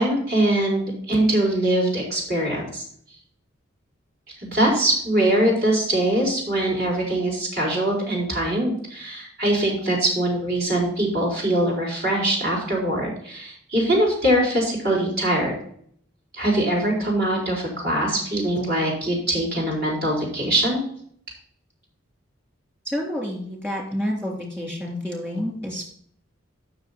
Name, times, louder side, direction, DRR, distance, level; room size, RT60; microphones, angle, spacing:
voice 1, 0.0-2.8 4.4-15.6 16.3-20.8, right 1 dB, 50° right, -3 dB, 4.7 m, -22 dB
voice 2, 22.8-25.8, equal, 10° right, -1 dB, 3.1 m, -29 dB
11.5 x 6.4 x 4.2 m, 0.63 s
head